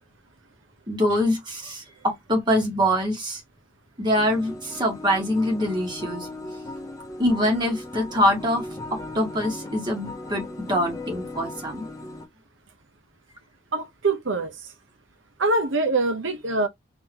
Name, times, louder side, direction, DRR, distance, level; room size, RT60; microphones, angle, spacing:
voice 1, 0.9-3.4 4.0-6.3 7.2-11.9, equal, 25° right, 1.9 m, -24 dB
sound 1, 4.1-12.3, left 2 dB, 15° left, 0.9 m, -37 dB
voice 2, 13.7-14.5 15.4-16.7, right 3 dB, 70° right, 1.0 m, -24 dB
3.9 x 2.8 x 3.0 m
head